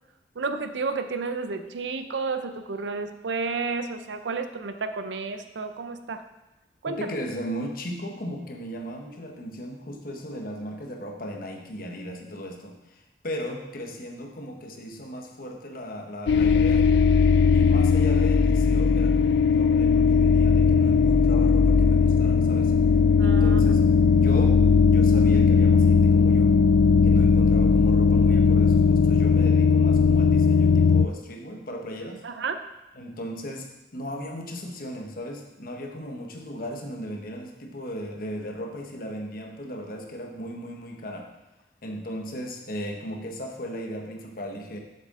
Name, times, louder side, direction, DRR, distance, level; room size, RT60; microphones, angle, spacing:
voice 1, 0.4-6.2 6.8-7.2 23.2-23.9 32.2-32.6, right 4 dB, 85° right, 8 dB, 0.6 m, -31 dB
voice 2, 6.9-16.9 17.5-22.7 23.2-23.9 24.1-26.6 27.0-32.2 32.9-41.3 41.8-44.8, equal, 50° left, 2 dB, 1.0 m, -36 dB
sound 1, 16.3-31.1, left 5 dB, 70° left, 0.3 m, -18 dB
7.5 x 6.7 x 3.7 m, 0.99 s
head